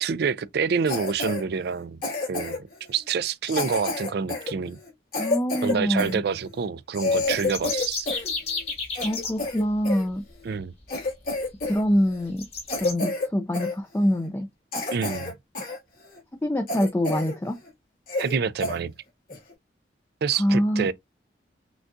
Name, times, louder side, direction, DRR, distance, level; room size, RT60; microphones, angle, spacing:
voice 1, 0.0-2.0 2.3-4.8 5.6-8.1 10.4-10.7 14.9-15.3 18.2-18.9 20.2-20.9, right 6 dB, 65° right, 0.4 m, -27 dB
Cough, 0.9-1.4 2.0-2.7 3.4-6.2 6.6-6.7 6.9-8.3 8.6-10.0 10.5-10.6 10.9-11.8 12.1-12.3 12.7-13.3 13.5-13.7 14.2-14.3 14.7-15.8 16.2-16.3 16.7-17.4 17.7-17.8 18.1-18.4 18.6-18.8 19.3-19.5, left 3 dB, 55° left, 2.4 m, -29 dB
voice 2, 5.2-6.2 9.0-10.2 11.7-12.5 12.8-14.5 16.4-17.6 20.4-20.9, equal, 15° left, 0.4 m, -25 dB
sound 1, 7.3-9.3 11.1-11.2 11.6-11.7 12.4-12.9, left 4 dB, 35° left, 1.6 m, -32 dB
6.1 x 2.3 x 2.6 m
head